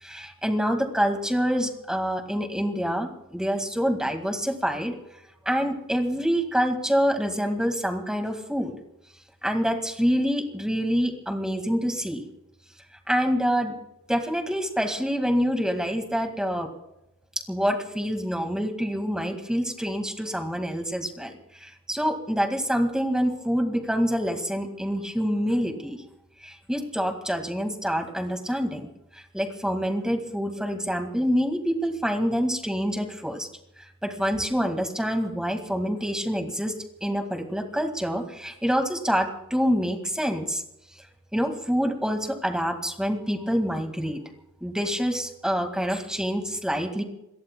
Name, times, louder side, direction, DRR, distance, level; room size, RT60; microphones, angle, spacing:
voice 1, 0.0-4.9 5.5-8.7 9.4-12.2 13.1-13.8 14.1-16.7 17.5-26.0 26.4-28.9 29.3-33.5 34.0-40.6 41.3-44.2 44.6-47.0, equal, 5° right, 4 dB, 2.0 m, -26 dB
29.0 x 22.0 x 2.3 m, 0.86 s
head